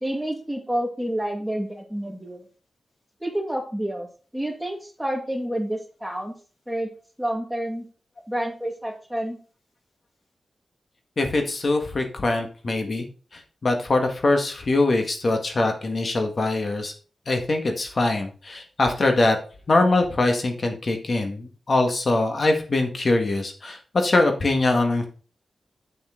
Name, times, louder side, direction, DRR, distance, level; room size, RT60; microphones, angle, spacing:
voice 1, 0.0-2.4 3.2-4.1 4.3-6.3 6.7-6.9 7.2-7.9 8.3-9.4, right 1 dB, 5° right, 3 dB, 2.0 m, -29 dB
voice 2, 11.2-13.0 13.3-16.9 17.3-19.4 19.7-25.1, left 2 dB, 50° left, 4 dB, 1.7 m, -23 dB
8.6 x 7.8 x 3.8 m, 0.38 s
wide cardioid pair, 90°, 0 cm